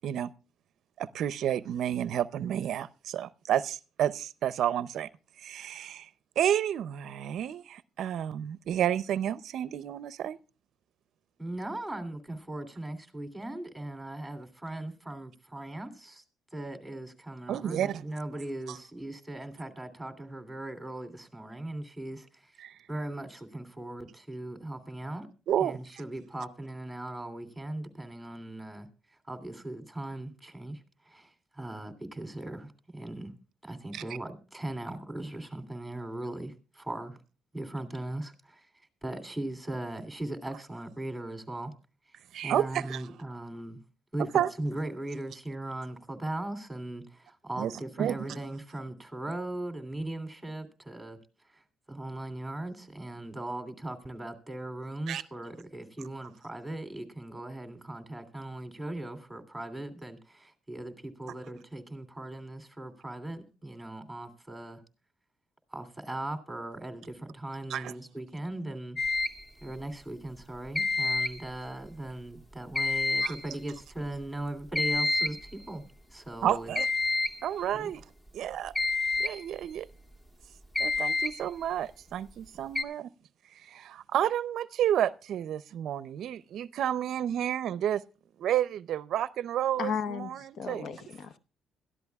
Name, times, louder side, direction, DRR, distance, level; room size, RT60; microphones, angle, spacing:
voice 1, 1.0-5.1 5.4-6.1 6.4-10.4 17.5-18.0 22.6-22.7 25.5-25.8 33.9-34.0 42.3-43.0 44.3-44.5 47.6-47.7 48.0-48.1 55.1-55.2 67.7-67.9 73.2-73.3 76.4-76.9 77.4-78.0 78.3-78.7 79.2-79.9 80.8-83.1 83.6-88.0 88.4-90.9, right 10 dB, 65° right, 0.5 m, -30 dB
voice 2, 11.4-16.2 16.5-22.5 22.9-25.3 25.6-28.9 29.3-33.3 33.6-37.2 37.5-38.7 39.0-41.7 42.4-43.8 44.1-51.2 51.5-51.6 51.9-64.8 65.7-69.0 69.6-75.8 76.1-76.7 77.7-77.9, right 1 dB, 5° right, 2.9 m, -39 dB
Beeping Danger, 69.0-69.4 70.8-71.5 72.8-73.5 74.8-75.5 76.8-77.4 78.8-79.4 80.8-81.4 82.8-82.9, left 3 dB, 15° left, 1.9 m, -28 dB
voice 3, 89.8-91.4, left 6 dB, 55° left, 0.7 m, -35 dB
21.5 x 13.5 x 2.3 m
cardioid pair, 110°, 0 cm